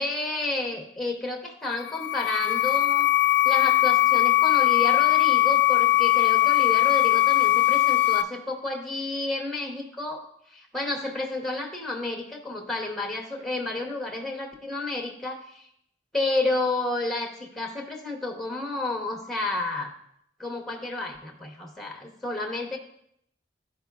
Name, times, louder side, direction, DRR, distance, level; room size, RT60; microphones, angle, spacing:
voice 1, 0.0-3.1 3.4-15.4 16.1-19.9 20.4-22.8, left 2 dB, ahead, 1 dB, 0.8 m, -31 dB
sound 1, 1.7-8.2, left 15 dB, 80° left, 0.5 m, -20 dB
12.0 x 4.6 x 2.3 m, 0.72 s
head